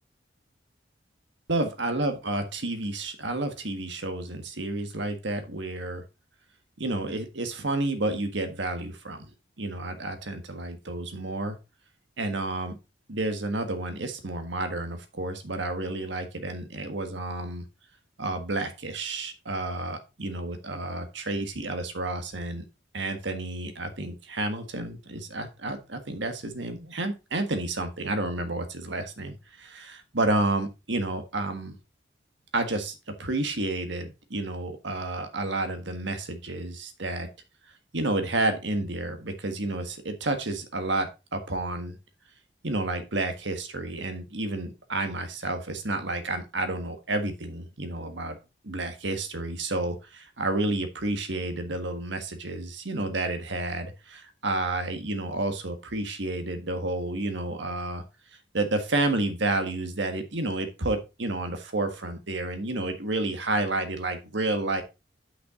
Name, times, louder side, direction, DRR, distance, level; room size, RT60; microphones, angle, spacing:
voice 1, 1.5-6.0 6.8-9.3 9.6-11.6 12.2-12.8 13.1-17.6 18.2-22.7 22.9-31.7 32.5-37.3 37.9-42.0 42.6-48.4 48.6-58.0 58.5-64.8, right 2 dB, 70° right, 7 dB, 1.5 m, -30 dB
8.6 x 5.9 x 3.7 m, 0.27 s
head